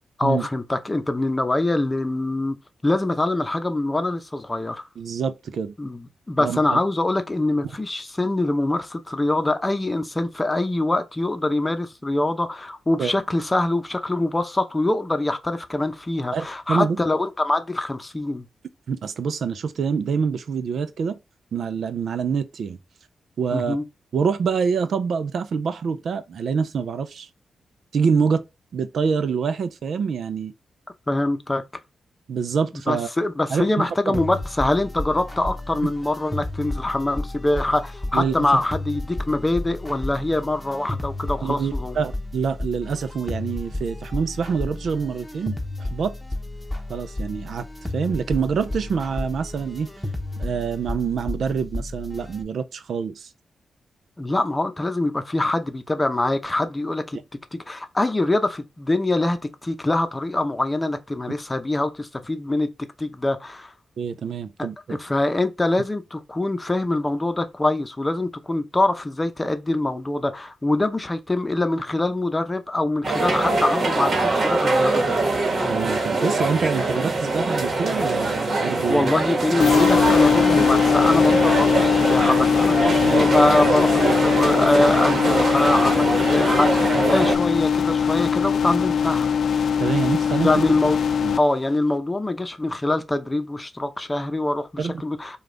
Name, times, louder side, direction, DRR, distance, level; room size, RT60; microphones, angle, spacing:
voice 1, 0.2-2.6 2.8-4.9 5.8-18.4 23.5-23.8 31.1-31.6 32.9-42.0 54.2-57.2 57.5-62.7 63.0-63.7 64.9-75.2 78.9-89.3 90.4-91.0 91.4-95.4, left 2 dB, 25° left, 0.7 m, -24 dB
voice 2, 5.0-5.7 6.4-6.8 13.0-13.1 16.3-17.0 18.9-21.2 21.5-22.8 23.4-23.8 24.1-27.3 27.9-28.4 28.7-30.5 32.3-33.1 33.5-34.2 35.8-35.9 38.1-38.5 41.4-46.1 46.9-47.7 47.9-49.9 50.4-53.3 64.0-65.0 75.7-79.1 83.0-83.2 89.8-90.6 91.2-91.3 94.8-95.0, right 6 dB, 75° right, 0.5 m, -26 dB
sound 1, 34.1-52.4, left 2 dB, 10° left, 1.0 m, -32 dB
sound 2, 73.0-87.3, right 2 dB, 55° right, 1.3 m, -23 dB
sound 3, 79.6-91.4, left 7 dB, 70° left, 0.5 m, -20 dB
5.0 x 2.4 x 3.8 m
cardioid pair, 65°, 0 cm